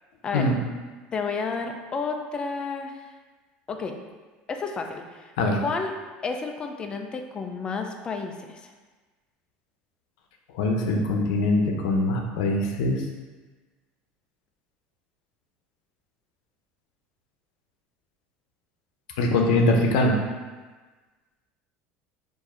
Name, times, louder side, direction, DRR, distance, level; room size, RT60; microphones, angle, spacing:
voice 1, 1.1-2.9 3.7-3.9 4.5-5.3 5.6-5.9 6.2-8.7, left 4 dB, 20° left, 4 dB, 0.4 m, -31 dB
voice 2, 10.6-13.0 19.2-20.1, left 2 dB, 85° left, 2 dB, 0.7 m, -22 dB
4.6 x 2.6 x 4.3 m, 1.3 s
cardioid pair, 140°, 4 cm